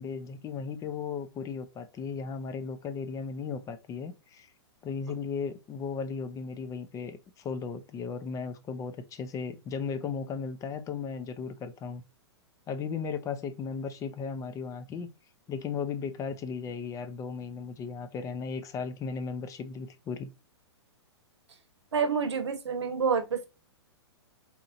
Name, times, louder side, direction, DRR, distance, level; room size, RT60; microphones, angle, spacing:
voice 1, 0.0-4.5 4.8-12.0 12.7-15.1 15.5-20.3, left 5 dB, 25° left, 0.6 m, -36 dB
voice 2, 21.9-23.5, right 6 dB, 80° right, 0.9 m, -28 dB
4.2 x 2.7 x 2.5 m
hypercardioid pair, 115°, 14 cm